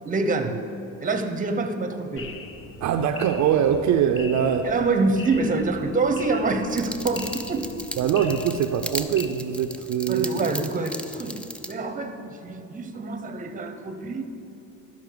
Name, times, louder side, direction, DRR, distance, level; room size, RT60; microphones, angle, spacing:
voice 1, 0.0-0.6 1.0-2.3 4.6-7.7 10.1-11.4 11.7-14.3, right 3 dB, 25° right, 7 dB, 0.9 m, -26 dB
sound 1, 2.2-9.3, left 4 dB, 45° left, 0.9 m, -41 dB
voice 2, 2.8-4.7 8.0-10.5, right 8 dB, 65° right, 6 dB, 0.6 m, -23 dB
sound 2, 6.7-11.7, equal, 5° left, 0.5 m, -36 dB
12.0 x 5.4 x 6.7 m, 2.8 s
cardioid pair, 100°, 31 cm